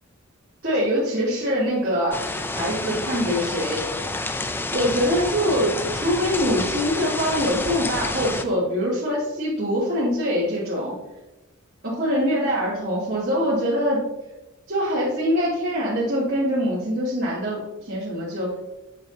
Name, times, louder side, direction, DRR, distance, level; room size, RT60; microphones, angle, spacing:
voice 1, 0.6-2.2 2.5-3.8 4.7-11.0 11.8-14.0 14.7-18.5, equal, 50° right, -10 dB, 2.7 m, -24 dB
sound 1, 2.1-8.4, left 2 dB, 10° left, 0.4 m, -29 dB
9.0 x 6.9 x 2.8 m, 1.0 s
head